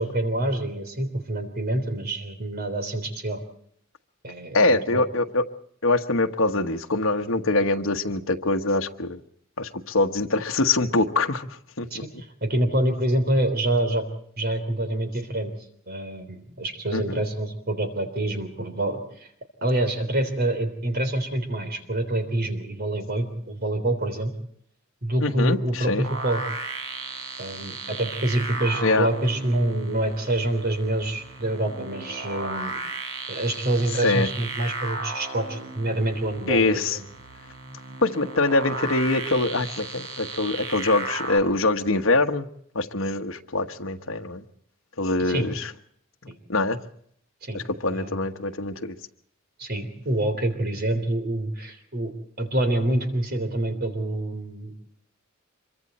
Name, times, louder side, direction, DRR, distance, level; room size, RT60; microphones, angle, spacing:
voice 1, 0.0-3.4 4.2-5.0 11.9-14.1 14.4-15.5 15.9-19.3 19.6-24.3 25.0-26.4 27.4-32.8 33.3-37.1 45.2-45.5 46.3-46.4 47.4-48.2 49.6-52.1 52.4-54.7, right 1 dB, 50° right, 8 dB, 3.5 m, -26 dB
voice 2, 4.5-5.4 5.8-9.2 9.6-11.5 11.8-11.9 16.9-17.2 25.2-26.1 28.8-29.1 34.0-34.3 36.5-37.0 38.0-42.5 42.7-44.4 45.0-45.7 46.5-46.8 47.5-48.9, left 2 dB, 70° left, 5 dB, 1.3 m, -24 dB
sound 1, 26.0-41.4, right 3 dB, 70° right, 5.4 m, -35 dB
26.0 x 23.5 x 4.3 m, 0.65 s
head